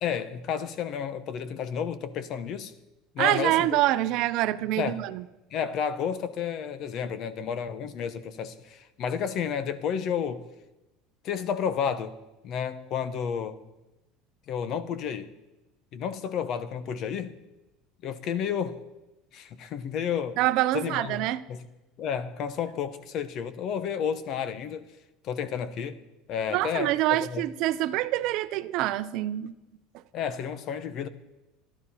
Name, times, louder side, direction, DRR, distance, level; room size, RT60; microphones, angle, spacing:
voice 1, 0.0-2.7 3.1-3.8 4.8-5.0 5.5-10.4 11.2-12.1 12.4-13.6 14.5-15.3 15.9-17.4 18.0-18.8 19.3-20.4 20.7-21.2 21.5-21.6 22.0-24.9 25.2-26.0 26.3-27.4 30.1-31.1, left 7 dB, 50° left, 1.0 m, -31 dB
voice 2, 3.2-5.2 20.4-21.4 26.5-29.5, right 15 dB, 60° right, 0.6 m, -26 dB
12.0 x 12.0 x 5.6 m
supercardioid pair, 125°, 0 cm